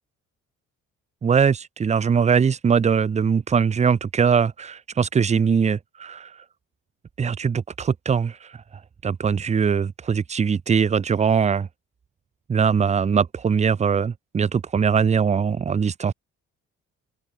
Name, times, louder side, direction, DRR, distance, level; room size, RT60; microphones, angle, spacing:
voice 1, 1.2-6.3 7.2-8.5 9.0-11.7 12.5-16.1, right 6 dB, 25° right, 0.5 m, -21 dB
open air
cardioid pair, 90°, 30 cm